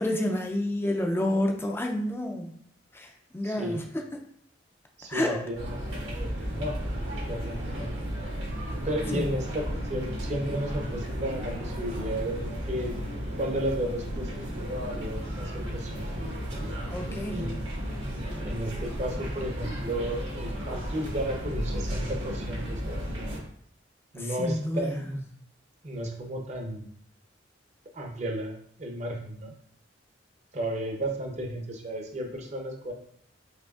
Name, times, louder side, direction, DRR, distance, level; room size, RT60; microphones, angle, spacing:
voice 1, 0.0-2.6 2.9-4.0 5.1-5.4 9.1-9.2 16.9-17.6 24.2-24.9, left 1 dB, 10° left, 3 dB, 0.4 m, -29 dB
voice 2, 3.4-3.8 5.0-6.8 7.2-7.9 8.5-13.0 13.4-16.0 17.3-17.7 18.4-23.1 24.1-25.2 25.8-26.9 27.9-29.5 30.5-32.9, right 1 dB, 35° right, 2 dB, 0.6 m, -34 dB
sound 1, 5.5-23.4, equal, 80° right, 1.4 m, -34 dB
4.9 x 2.7 x 2.3 m, 0.64 s
head